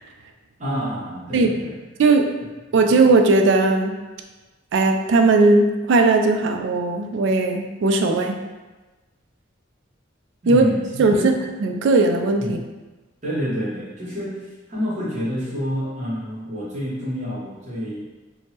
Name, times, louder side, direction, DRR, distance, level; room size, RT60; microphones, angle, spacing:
voice 1, 0.6-1.7 10.4-11.3 12.4-12.6 13.2-18.0, equal, 40° right, -7 dB, 1.0 m, -28 dB
voice 2, 2.7-3.9 4.7-8.3 10.5-10.6 11.0-11.3 11.6-12.6, right 3 dB, 65° right, 5 dB, 0.3 m, -17 dB
3.4 x 2.0 x 2.8 m, 1.2 s
head